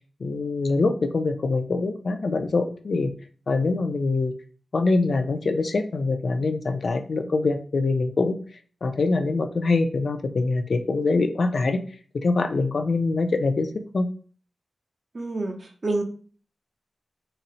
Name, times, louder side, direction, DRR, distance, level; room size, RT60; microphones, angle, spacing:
voice 1, 0.2-3.1 3.5-4.3 4.7-8.4 8.8-11.8 12.1-14.1, left 3 dB, 55° left, 7 dB, 0.3 m, -24 dB
voice 2, 15.1-16.0, right 2 dB, 40° right, 4 dB, 0.6 m, -28 dB
3.9 x 2.0 x 2.7 m, 0.42 s
wide cardioid pair, 130°, 0 cm